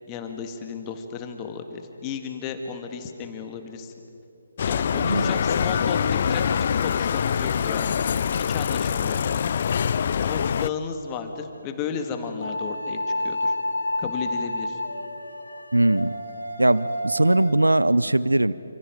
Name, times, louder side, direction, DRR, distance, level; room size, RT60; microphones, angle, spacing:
voice 1, 0.1-3.9 4.6-8.0 8.4-9.5 10.2-13.0 13.2-13.5 14.0-14.8, left 6 dB, 20° left, 5 dB, 1.9 m, -34 dB
Bicycle, 4.6-10.7, left 7 dB, 45° left, 0.4 m, -24 dB
voice 2, 5.0-5.3 15.7-16.1 16.6-18.5, right 1 dB, 85° right, 18 dB, 0.6 m, -20 dB
sound 1, 12.4-17.5, left 1 dB, 80° left, 2.1 m, -30 dB
28.5 x 26.5 x 5.2 m, 2.8 s
figure-of-eight pair, 145°, 0 cm